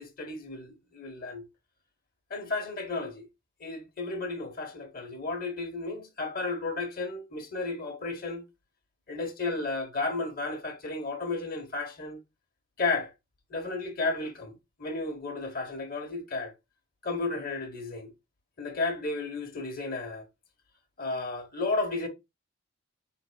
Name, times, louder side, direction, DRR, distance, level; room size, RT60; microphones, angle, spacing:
voice 1, 0.0-1.4 2.3-3.2 3.6-8.4 9.1-12.2 12.8-13.1 13.5-16.5 17.0-18.1 18.6-20.2 21.0-22.1, left 3 dB, 50° left, 1.2 m, -33 dB
5.0 x 3.9 x 2.3 m
head